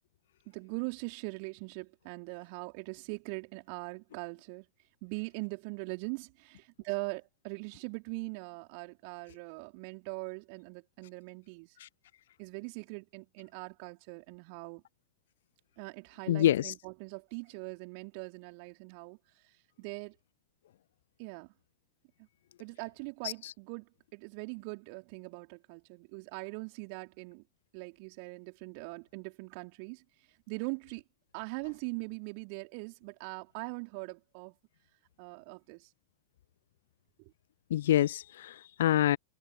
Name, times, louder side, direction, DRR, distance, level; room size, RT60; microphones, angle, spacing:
voice 1, 0.5-4.7 5.0-11.8 12.4-14.8 15.8-19.2 19.4-19.5 19.8-20.2 21.2-21.5 22.6-27.4 27.7-30.0 30.5-31.0 31.3-34.5 35.2-35.9 37.2-37.3, right 36 dB, 45° right, 4.0 m, -41 dB
voice 2, 16.3-16.7 23.2-23.5 37.7-39.2, left 12 dB, 60° left, 1.0 m, -27 dB
figure-of-eight pair, 90°, 0 cm